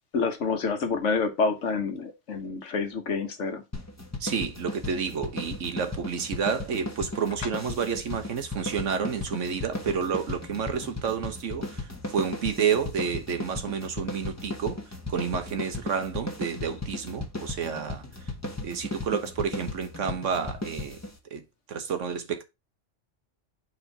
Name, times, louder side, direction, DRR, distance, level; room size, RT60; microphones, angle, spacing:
voice 1, 0.1-3.6, left 4 dB, 75° left, 1.4 m, -28 dB
sound 1, 3.7-21.2, left 2 dB, 15° left, 1.2 m, -36 dB
voice 2, 4.2-14.8 15.1-18.0 18.6-21.0 21.3-22.4, right 6 dB, 80° right, 1.4 m, -30 dB
4.9 x 4.5 x 5.2 m
omnidirectional pair, 1.3 m